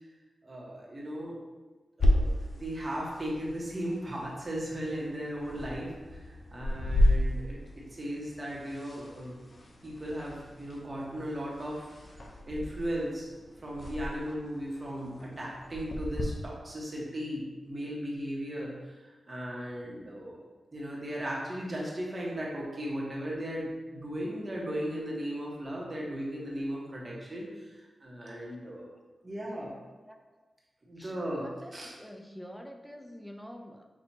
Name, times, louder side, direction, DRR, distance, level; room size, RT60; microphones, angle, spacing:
voice 1, 0.4-1.4 2.0-9.4 9.8-11.9 12.5-13.3 13.6-19.0 19.3-20.5 20.7-28.9 29.2-29.7 30.9-31.9, equal, 35° right, -4 dB, 1.3 m, -37 dB
sound 1, 2.0-16.2, left 1 dB, 50° left, 0.7 m, -33 dB
voice 2, 31.0-33.9, equal, 5° left, 4 dB, 0.4 m, -47 dB
6.1 x 2.7 x 2.8 m, 1.3 s
cardioid pair, 65°, 0 cm